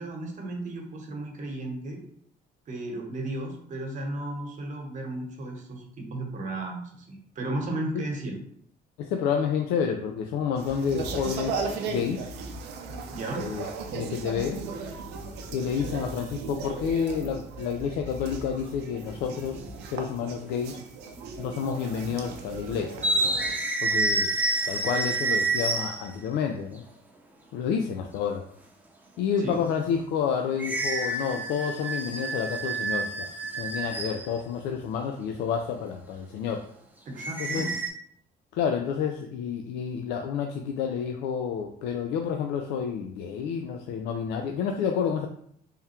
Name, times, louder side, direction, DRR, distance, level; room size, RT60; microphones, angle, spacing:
voice 1, 0.0-2.0 2.7-8.4 13.1-13.4 29.4-29.6 37.0-37.7, right 2 dB, 50° right, 2 dB, 1.1 m, -34 dB
voice 2, 9.0-11.6 11.9-12.3 13.4-13.6 13.9-14.6 15.5-19.6 19.9-20.8 21.4-23.0 23.2-23.4 23.8-24.3 24.7-26.8 27.5-28.4 29.2-33.3 33.6-36.6 37.4-37.7 38.5-45.3, left 7 dB, 85° left, 3 dB, 0.4 m, -29 dB
sound 1, 10.5-23.5, right 4 dB, 90° right, 0.5 m, -37 dB
sound 2, 18.6-18.9 20.1-20.2 21.2-21.6 21.8-22.0 22.9-26.2 30.6-34.4 37.2-37.9, right 2 dB, 10° right, 0.7 m, -28 dB
3.6 x 2.3 x 4.3 m, 0.66 s
cardioid pair, 110°, 17 cm